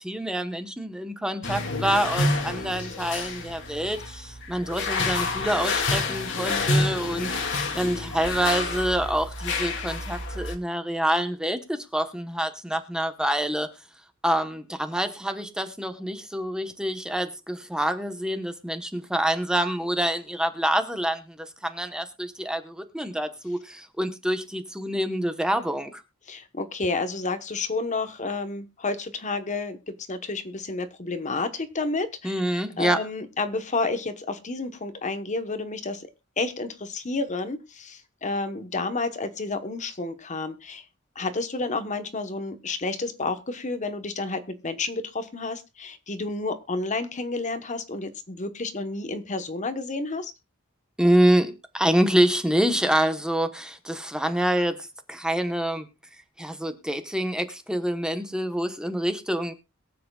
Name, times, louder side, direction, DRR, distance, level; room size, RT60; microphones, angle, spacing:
voice 1, 0.0-13.7 14.2-21.4 21.6-26.0 32.2-33.0 51.0-55.9 56.4-59.5, right 1 dB, 5° right, 1.1 m, -26 dB
sound 1, 1.4-10.6, left 2 dB, 65° left, 2.3 m, -28 dB
voice 2, 26.3-36.0 36.4-40.8 41.1-50.3, left 3 dB, 35° left, 1.1 m, -30 dB
22.5 x 7.7 x 2.3 m
head